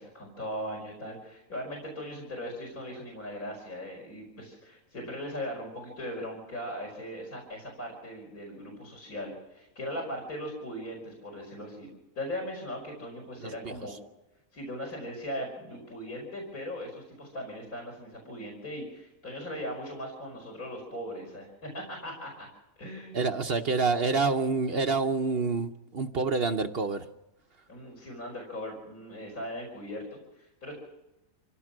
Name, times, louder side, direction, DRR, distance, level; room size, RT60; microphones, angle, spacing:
voice 1, 0.0-11.9 12.2-13.9 14.5-22.5 22.8-23.2 27.7-30.7, equal, 60° left, 0 dB, 5.4 m, -39 dB
voice 2, 13.4-13.7 23.1-27.0, right 4 dB, 45° right, 7 dB, 0.9 m, -27 dB
26.0 x 17.0 x 6.2 m, 0.94 s
omnidirectional pair, 1.7 m